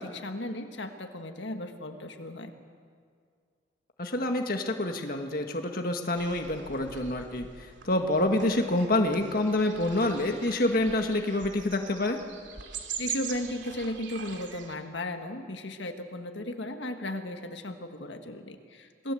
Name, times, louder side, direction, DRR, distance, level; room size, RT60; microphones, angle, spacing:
voice 1, 0.0-2.5 13.0-19.1, left 1 dB, 80° left, 5 dB, 1.8 m, -36 dB
voice 2, 4.0-12.2, left 1 dB, 50° left, 4 dB, 1.7 m, -27 dB
sound 1, 6.1-14.8, right 7 dB, 85° right, 2.9 m, -42 dB
27.0 x 20.5 x 7.9 m, 2.1 s
head